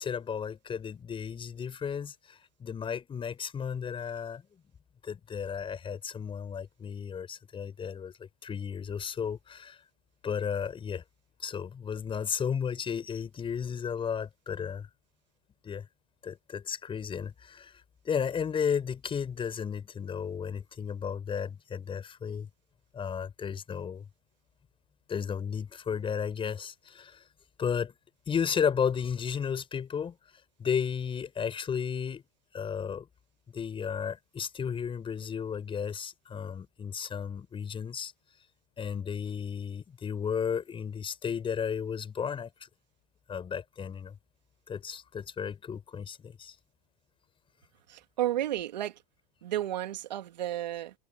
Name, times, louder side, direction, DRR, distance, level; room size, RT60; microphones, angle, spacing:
voice 1, 0.0-4.4 5.0-9.8 10.2-11.0 11.4-14.9 15.6-15.9 16.2-22.5 22.9-24.0 25.1-27.2 27.6-27.9 28.3-30.2 30.6-32.2 32.5-33.1 33.5-38.1 38.8-42.5 43.3-44.2 44.7-46.6, left 7 dB, 25° left, 7.5 m, -34 dB
voice 2, 47.9-49.0 49.4-50.9, right 13 dB, 85° right, 2.9 m, -32 dB
hypercardioid pair, 110°, 21 cm